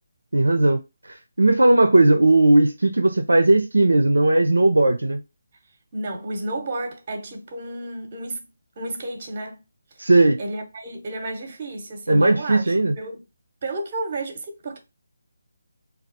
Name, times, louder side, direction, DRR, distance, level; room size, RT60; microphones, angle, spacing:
voice 1, 0.3-5.2 10.0-10.4 12.1-12.9, right 2 dB, 80° right, 0.4 m, -17 dB
voice 2, 5.9-8.4 8.8-9.6 10.0-10.1 10.4-13.2 13.6-14.8, right 2 dB, 40° right, 0.8 m, -32 dB
3.2 x 2.3 x 2.6 m
figure-of-eight pair, 150°, 0 cm